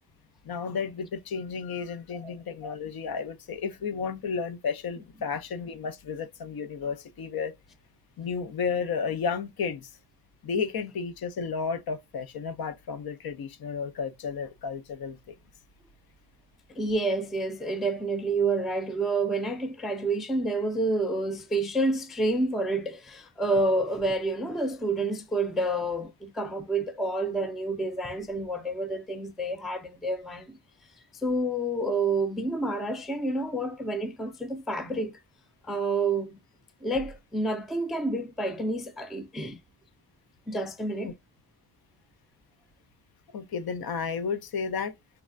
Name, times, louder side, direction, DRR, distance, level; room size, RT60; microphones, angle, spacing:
voice 1, 0.4-7.5 8.2-9.9 10.4-15.3 41.0-41.1 43.3-44.9, left 5 dB, 60° left, 0.6 m, -32 dB
voice 2, 16.8-30.6 31.1-35.2 35.6-36.3 36.8-39.6 40.5-41.1, right 2 dB, ahead, 0.3 m, -29 dB
3.4 x 3.2 x 2.4 m
wide cardioid pair, 155°, 41 cm